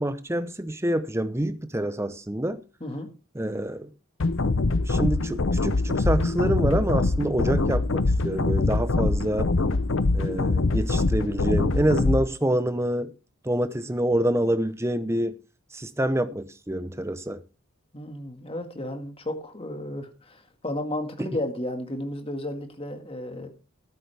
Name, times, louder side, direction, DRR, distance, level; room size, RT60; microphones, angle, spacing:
voice 1, 0.0-2.6 3.3-3.9 4.9-9.5 10.1-13.1 13.4-15.4 15.7-17.4 21.2-21.3, right 1 dB, 10° right, 0.7 m, -26 dB
sound 1, 4.2-12.2, left 3 dB, 60° left, 0.7 m, -24 dB
voice 2, 17.9-23.5, left 1 dB, 25° left, 1.8 m, -33 dB
13.5 x 11.5 x 3.4 m
head